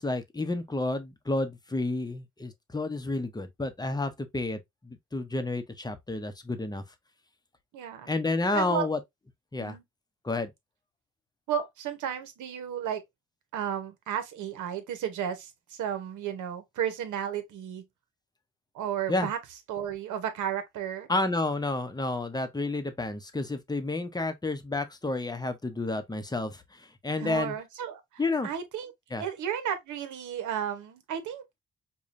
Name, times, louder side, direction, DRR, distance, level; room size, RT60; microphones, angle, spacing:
voice 1, 0.0-6.8 8.1-9.0 9.5-9.8 10.2-10.5 19.1-19.3 21.1-27.5 28.2-28.5 29.1-29.3, left 2 dB, 15° left, 0.7 m, -30 dB
voice 2, 7.7-8.1 8.5-8.9 9.6-9.8 11.5-13.0 13.5-17.8 18.7-19.4 19.7-21.1 27.2-28.0 28.4-28.9 29.2-31.4, right 9 dB, 75° right, 1.0 m, -33 dB
4.8 x 2.3 x 2.6 m
cardioid pair, 90°, 30 cm